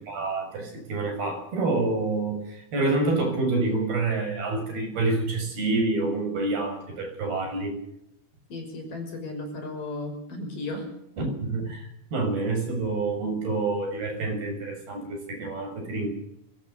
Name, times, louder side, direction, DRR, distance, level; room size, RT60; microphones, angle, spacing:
voice 1, 0.1-7.8 11.2-16.1, right 3 dB, 80° right, 4 dB, 9.0 m, -27 dB
voice 2, 8.5-10.9, left 2 dB, 60° left, 5 dB, 7.5 m, -35 dB
27.5 x 18.0 x 7.0 m, 0.76 s
omnidirectional pair, 4.4 m